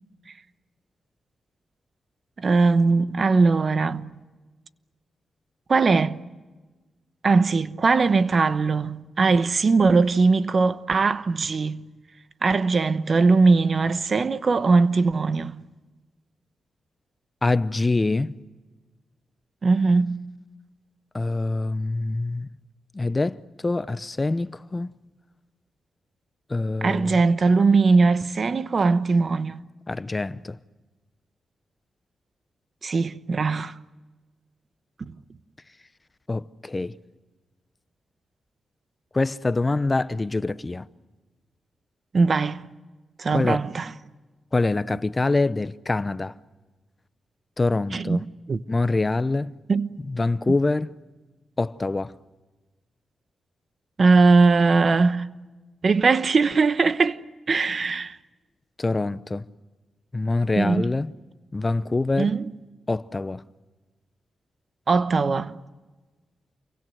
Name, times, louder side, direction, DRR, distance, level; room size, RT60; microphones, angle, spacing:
voice 1, 2.4-4.1 5.7-6.3 7.2-11.9 12.4-15.6 19.6-20.3 26.8-29.6 32.8-33.7 42.1-42.7 43.2-43.9 47.9-48.6 49.7-50.0 54.0-55.3 55.8-57.2 57.5-58.2 60.6-60.9 62.2-62.5 64.9-65.6, right 4 dB, 50° right, 1.0 m, -20 dB
voice 2, 17.4-18.3 21.1-22.5 22.9-24.9 26.5-27.2 29.9-30.6 36.3-37.0 39.1-40.9 43.3-43.6 44.5-46.3 47.6-48.2 48.7-49.5 50.1-50.9 51.6-52.1 58.8-59.5 60.1-61.1 61.5-62.3 62.9-63.4, left 2 dB, 25° left, 0.7 m, -25 dB
29.0 x 23.5 x 7.8 m
cardioid pair, 80°, 0 cm